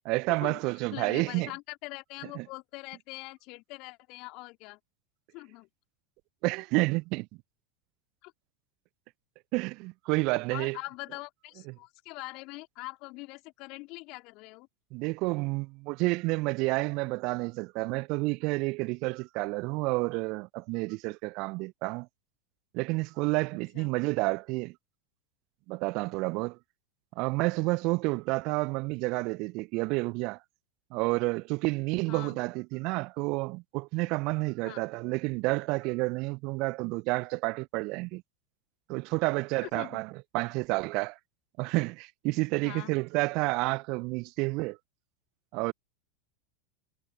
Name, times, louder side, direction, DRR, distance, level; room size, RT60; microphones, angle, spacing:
voice 1, 0.1-1.5 2.3-2.4 6.4-7.3 9.5-10.8 14.9-22.1 22.7-24.8 25.7-26.6 27.2-30.4 30.9-38.2 38.9-41.2 41.6-44.8 45.5-45.7, right 25 dB, 50° right, 0.5 m, -30 dB
voice 2, 0.9-4.8 5.3-5.7 8.2-8.3 10.5-14.7 23.7-23.9 32.1-32.4 34.6-34.8 39.6-40.0 42.6-42.9, left 25 dB, 50° left, 3.8 m, -43 dB
figure-of-eight pair, 85°, 0 cm